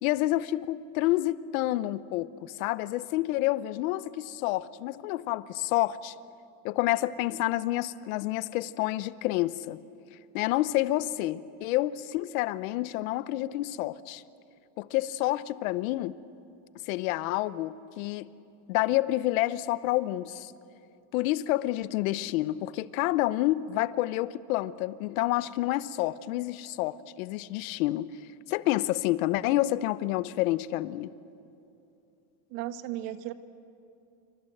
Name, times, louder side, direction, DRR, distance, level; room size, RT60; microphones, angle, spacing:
voice 1, 0.0-6.1 6.6-9.8 10.3-14.2 14.8-16.2 16.9-18.3 18.7-20.5 21.1-28.1 28.5-31.1, left 16 dB, 75° left, 16 dB, 0.9 m, -29 dB
voice 2, 32.5-33.3, right 13 dB, 65° right, 10 dB, 1.5 m, -35 dB
27.5 x 25.5 x 7.9 m, 2.8 s
cardioid pair, 160°, 42 cm